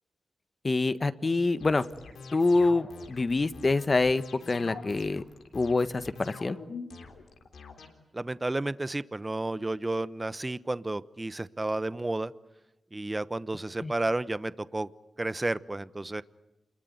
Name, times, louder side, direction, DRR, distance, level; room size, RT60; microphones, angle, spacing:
voice 1, 0.6-1.8 2.3-5.2 5.5-6.6 13.8-13.9, left 3 dB, 40° left, 13 dB, 1.4 m, -26 dB
sound 1, 1.6-7.9, left 4 dB, 85° left, 3.7 m, -45 dB
voice 2, 8.1-12.3 12.9-14.9 15.2-16.2, right 2 dB, 25° right, 16 dB, 1.0 m, -31 dB
28.0 x 21.5 x 9.5 m, 0.97 s
cardioid pair, 55°, 0 cm